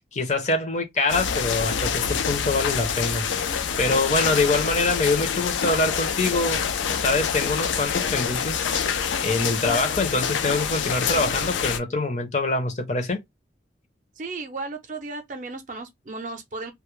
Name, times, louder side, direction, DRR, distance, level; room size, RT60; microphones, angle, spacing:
voice 1, 0.1-6.7 7.0-8.7 9.1-13.2, left 2 dB, 40° left, 0.6 m, -25 dB
sound 1, 1.1-11.8, left 7 dB, 90° left, 0.4 m, -26 dB
voice 2, 14.2-16.7, right 3 dB, 45° right, 0.5 m, -35 dB
2.2 x 2.0 x 3.0 m
head